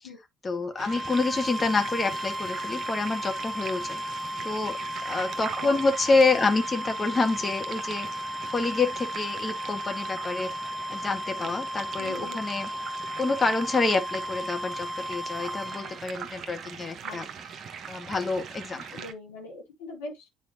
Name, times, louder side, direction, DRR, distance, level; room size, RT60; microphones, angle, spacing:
voice 1, 0.4-4.0 4.4-4.8 5.0-8.1 8.5-10.5 10.9-12.7 13.2-17.3 17.9-19.0, left 3 dB, 30° left, 1.6 m, -27 dB
sound 1, 0.7-16.0, equal, 10° right, 0.5 m, -35 dB
sound 2, 0.8-19.1, right 6 dB, 45° right, 1.2 m, -41 dB
voice 2, 12.0-12.4 17.0-17.2 18.7-20.3, left 1 dB, 75° left, 2.0 m, -41 dB
10.0 x 4.4 x 2.8 m
figure-of-eight pair, 55°, 0 cm